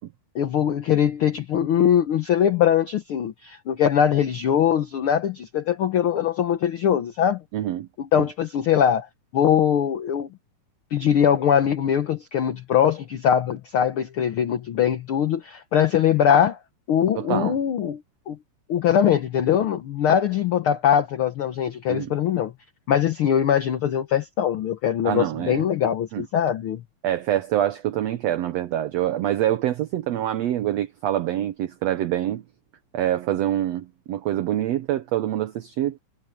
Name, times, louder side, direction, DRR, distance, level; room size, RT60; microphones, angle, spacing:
voice 1, 0.3-7.4 8.0-9.1 9.3-10.3 10.9-16.6 16.9-18.0 18.3-18.4 18.7-22.5 22.9-26.8, left 9 dB, 65° left, 1.3 m, -22 dB
voice 2, 7.5-7.9 8.2-8.3 17.2-17.6 21.9-22.1 25.0-25.7 26.1-26.3 27.0-32.4 32.9-36.0, right 12 dB, 70° right, 1.7 m, -25 dB
omnidirectional pair, 3.7 m